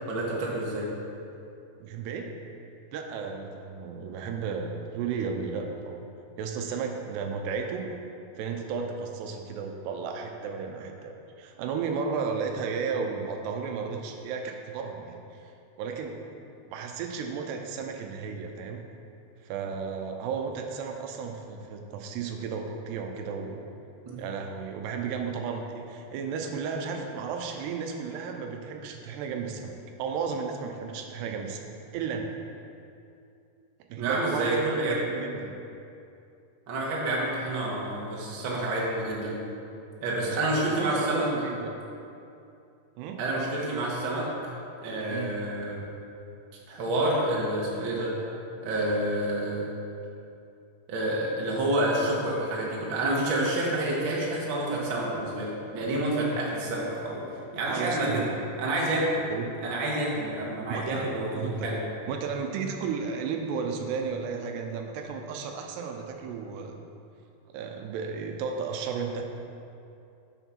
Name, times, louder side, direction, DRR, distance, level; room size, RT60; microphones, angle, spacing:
voice 1, 0.1-0.9 24.0-24.2 34.0-35.0 36.7-39.4 40.0-41.3 43.2-44.3 44.8-45.8 46.7-48.1 48.6-49.7 50.9-57.2 57.5-58.3 58.6-59.3 59.6-61.8, right 1 dB, 60° right, -4 dB, 1.2 m, -28 dB
voice 2, 1.8-2.3 2.9-6.1 6.4-7.9 8.4-15.5 15.8-16.2 16.7-18.9 19.4-23.6 24.2-32.4 33.9-35.6 40.2-41.7 43.0-43.2 45.1-45.4 57.7-58.3 59.3-59.6 60.7-61.1 61.3-61.7 62.1-66.9 67.5-69.2, right 5 dB, 85° right, 3 dB, 2.7 m, -34 dB
8.1 x 7.0 x 5.9 m, 2.6 s
omnidirectional pair, 4.9 m